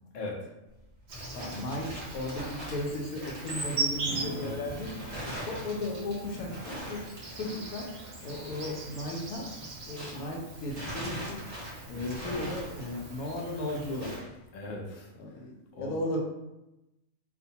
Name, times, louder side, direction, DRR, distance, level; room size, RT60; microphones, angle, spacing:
voice 1, 0.1-0.5 4.2-4.5 5.3-5.4 12.1-12.2 14.5-15.1 15.7-15.9, left 2 dB, 60° left, -2 dB, 0.7 m, -39 dB
sound 1, 0.7-10.3 10.6-14.4, equal, 40° right, 0.6 m, -43 dB
Insect, 1.1-14.2, right 3 dB, 85° right, 0.4 m, -40 dB
voice 2, 1.3-4.9 5.4-7.0 7.3-7.9 8.2-9.5 9.9-11.4 11.9-14.2 15.2-16.2, left 1 dB, 90° left, 0 dB, 1.1 m, -35 dB
Strum, 4.0-8.0, equal, 65° right, 0.9 m, -45 dB
2.5 x 2.2 x 2.7 m, 0.95 s
omnidirectional pair, 1.5 m